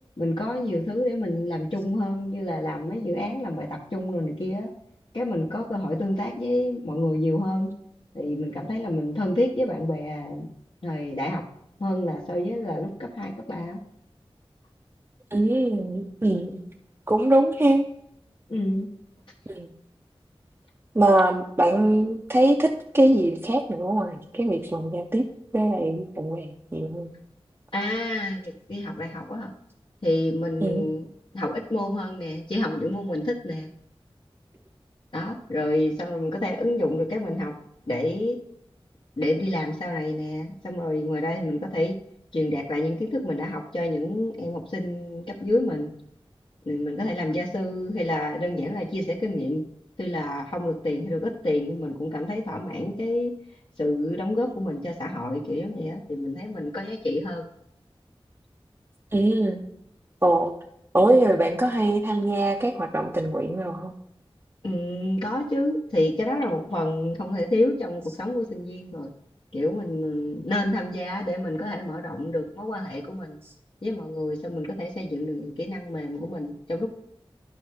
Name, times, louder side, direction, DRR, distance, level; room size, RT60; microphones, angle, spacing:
voice 1, 0.2-4.7 5.1-7.7 8.1-10.5 10.8-11.4 11.8-13.8 18.5-18.9 27.7-29.5 30.0-31.1 31.3-33.7 35.1-37.5 37.9-38.4 39.2-41.9 42.3-45.9 46.6-49.6 50.0-53.3 53.8-57.5 64.6-69.1 69.5-73.4 73.8-76.9, left 1 dB, 55° left, -4 dB, 1.0 m, -28 dB
voice 2, 15.3-16.6 17.1-17.9 19.5-19.7 20.9-25.2 25.5-27.1 30.6-30.9 59.1-59.6 60.2-60.5 60.9-63.9, right 1 dB, 25° right, 1 dB, 0.6 m, -22 dB
11.5 x 5.5 x 3.4 m, 0.75 s
wide cardioid pair, 55°, 10 cm